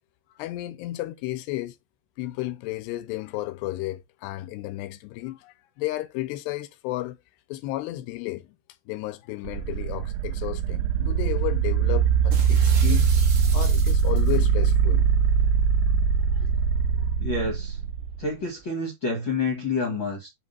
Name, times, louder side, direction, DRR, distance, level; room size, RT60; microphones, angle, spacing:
voice 1, 0.4-1.8 2.2-7.2 7.5-8.6 8.9-13.1 13.5-15.1, left 17 dB, 80° left, 2.5 m, -33 dB
sound 1, 9.5-18.2, right 7 dB, 85° right, 3.0 m, -22 dB
sound 2, 12.3-14.4, right 5 dB, 50° right, 2.1 m, -39 dB
voice 2, 17.2-17.8 18.2-20.3, left 3 dB, 60° left, 1.2 m, -28 dB
7.3 x 2.9 x 5.4 m
omnidirectional pair, 5.2 m